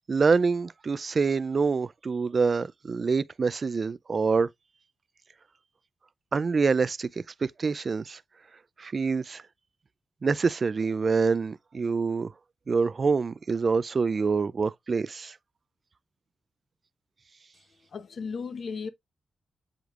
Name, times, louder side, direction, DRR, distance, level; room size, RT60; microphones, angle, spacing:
voice 1, 0.1-4.5 6.3-7.1 7.4-8.2 8.8-9.4 10.2-12.3 12.7-15.4, right 4 dB, 45° right, 0.4 m, -26 dB
voice 2, 17.9-18.9, left 5 dB, 60° left, 0.8 m, -35 dB
7.9 x 5.1 x 2.4 m
cardioid pair, 85°, 0 cm